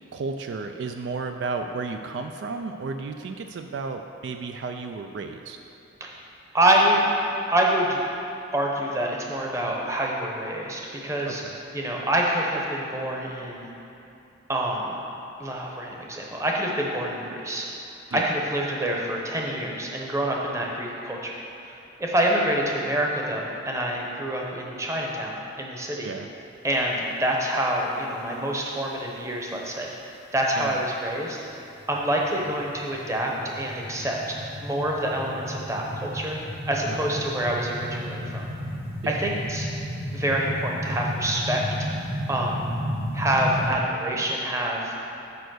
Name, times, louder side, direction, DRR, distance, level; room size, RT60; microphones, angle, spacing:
voice 1, 0.1-5.6 11.3-11.6 18.1-18.3 26.0-26.3 30.6-30.8 36.9-37.2 39.0-39.2, right 4 dB, 65° right, 5 dB, 0.3 m, -33 dB
voice 2, 6.5-7.1 7.5-8.0 8.5-11.4 11.7-13.7 14.5-15.0 15.4-17.7 18.1-21.3 21.6-21.7 22.0-26.1 26.6-31.4 31.9-34.4 34.6-36.4 36.7-38.5 39.1-39.7 40.1-42.6 43.1-45.0, right 1 dB, 15° right, -1 dB, 0.8 m, -26 dB
sound 1, 31.8-43.7, equal, 50° right, 1.2 m, -33 dB
6.9 x 5.1 x 6.3 m, 2.9 s
head